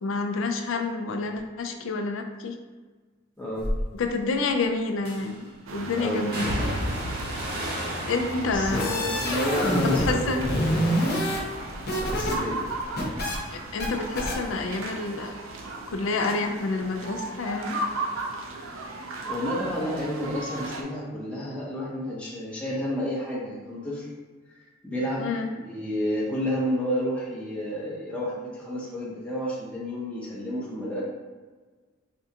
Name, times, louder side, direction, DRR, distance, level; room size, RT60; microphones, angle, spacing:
voice 1, 0.0-2.6 3.9-6.5 8.1-9.0 9.8-10.4 13.5-15.4 15.9-17.8 25.2-25.5, left 3 dB, 80° left, 5 dB, 0.4 m, -28 dB
voice 2, 3.4-3.7 5.9-6.2 8.5-10.7 11.9-12.6 19.3-24.1 24.8-25.3 25.5-31.0, equal, 5° left, -6 dB, 0.5 m, -30 dB
sound 1, 3.6-3.8 5.1-5.5 6.3-10.6 10.9-11.5 11.9-15.2 15.4-16.6 16.8-17.0, equal, 55° right, 0.8 m, -35 dB
sound 2, 5.7-20.8, right 2 dB, 90° right, 0.5 m, -36 dB
sound 3, 8.5-10.1 10.4-12.3 12.6-13.4 13.8-13.9 14.2-14.3, equal, 50° left, 0.8 m, -26 dB
4.3 x 2.4 x 2.8 m, 1.4 s
head